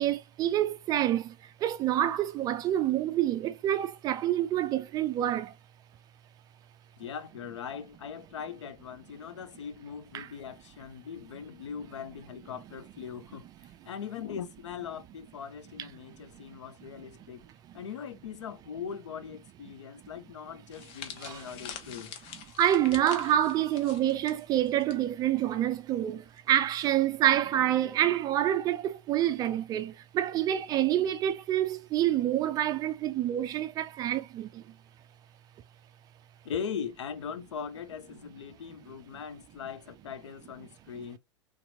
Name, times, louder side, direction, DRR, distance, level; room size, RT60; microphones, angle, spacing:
voice 1, 0.0-1.3 1.6-5.5 10.1-10.3 21.2-21.4 22.6-34.6, right 12 dB, 25° right, 0.3 m, -27 dB
voice 2, 7.0-13.5 13.8-17.4 17.7-22.1 36.4-41.2, left 7 dB, 65° left, 0.6 m, -40 dB
sound 1, 20.7-25.0 25.2-25.5 26.4-26.6, left 8 dB, 35° left, 0.8 m, -45 dB
3.2 x 2.9 x 2.9 m
figure-of-eight pair, 95°, 16 cm